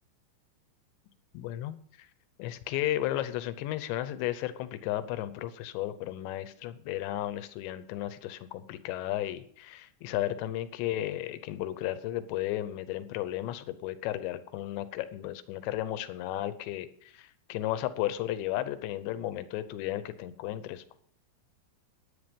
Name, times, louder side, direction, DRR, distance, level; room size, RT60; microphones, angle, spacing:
voice 1, 1.3-2.1 2.4-21.0, left 13 dB, 80° left, 13 dB, 3.0 m, -34 dB
13.0 x 9.4 x 5.3 m, 0.62 s
omnidirectional pair, 5.2 m